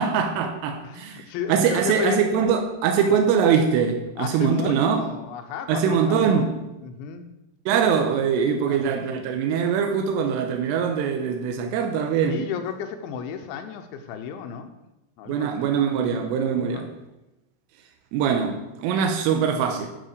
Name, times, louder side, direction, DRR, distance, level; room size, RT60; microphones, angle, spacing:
voice 1, 0.0-5.0 5.7-6.5 7.7-12.5 15.3-16.9 18.1-19.9, right 7 dB, 90° right, 4 dB, 3.5 m, -23 dB
voice 2, 0.8-2.2 3.0-3.2 4.2-6.5 6.8-7.3 8.7-9.0 12.2-14.7 15.2-16.2 16.6-16.9, left 7 dB, 80° left, 7 dB, 3.0 m, -33 dB
10.5 x 6.8 x 6.5 m, 0.99 s
omnidirectional pair, 5.7 m